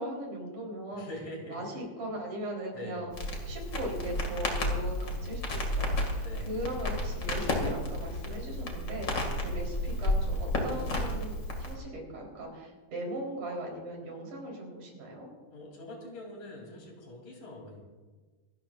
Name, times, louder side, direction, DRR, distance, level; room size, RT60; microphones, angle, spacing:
voice 1, 0.0-1.0 1.5-3.1 3.4-15.3, right 1 dB, 70° right, -1 dB, 5.3 m, -39 dB
voice 2, 0.9-1.6 2.7-3.1 6.2-6.6 15.5-17.8, left 1 dB, 80° left, 0 dB, 4.9 m, -44 dB
Crackle, 3.1-11.8, left 1 dB, 35° left, 2.7 m, -32 dB
26.0 x 13.0 x 2.5 m, 1.3 s
omnidirectional pair, 3.6 m